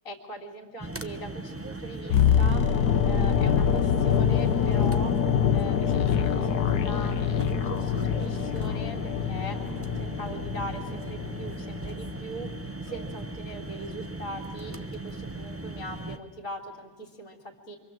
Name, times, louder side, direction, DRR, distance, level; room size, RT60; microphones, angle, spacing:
voice 1, 0.0-2.7 3.0-5.2 5.5-9.6 10.0-12.5 12.8-17.8, right 1 dB, 60° left, 0 dB, 3.1 m, -41 dB
sound 1, 0.8-16.2, right 2 dB, 15° right, 0.6 m, -38 dB
sound 2, 2.1-12.1 12.4-12.6, left 8 dB, 80° left, 1.5 m, -25 dB
27.5 x 24.0 x 7.6 m, 1.3 s
omnidirectional pair, 1.7 m